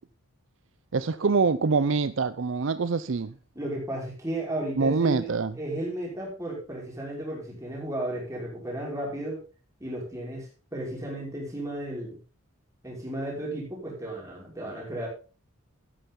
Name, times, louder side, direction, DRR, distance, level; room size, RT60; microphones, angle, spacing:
voice 1, 0.9-3.3 4.8-5.5, right 4 dB, 60° right, 0.5 m, -25 dB
voice 2, 3.5-9.4 9.8-12.2 12.8-15.1, right 1 dB, 15° right, 5.5 m, -34 dB
13.5 x 10.0 x 3.8 m
head